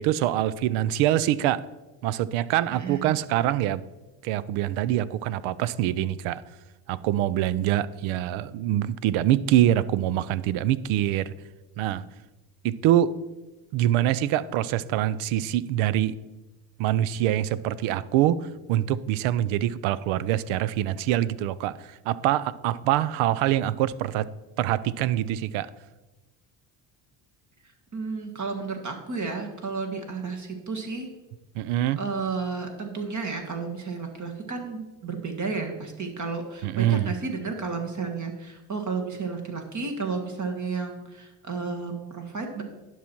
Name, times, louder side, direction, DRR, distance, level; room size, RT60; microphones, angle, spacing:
voice 1, 0.0-1.7 2.0-3.8 4.2-6.4 6.9-11.3 11.8-12.0 12.6-13.2 13.7-16.2 16.8-24.3 24.6-25.7 31.5-32.0 36.6-37.1, right 12 dB, 75° right, 18 dB, 0.6 m, -24 dB
voice 2, 2.7-3.1 27.9-31.1 32.0-42.6, right 4 dB, 35° right, 3 dB, 1.6 m, -32 dB
11.0 x 5.8 x 4.5 m, 1.1 s
supercardioid pair, 85°, 48 cm